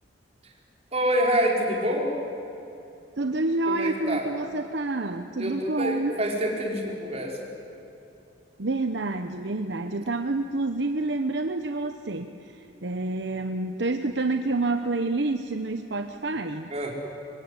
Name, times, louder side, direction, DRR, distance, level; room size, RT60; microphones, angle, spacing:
voice 1, 0.9-2.1 3.7-4.2 5.4-7.4 16.7-16.9, equal, 35° right, -1 dB, 4.9 m, -26 dB
voice 2, 3.2-6.2 8.6-16.7, right 2 dB, 65° right, 7 dB, 1.0 m, -28 dB
25.0 x 23.5 x 9.8 m, 2.8 s
head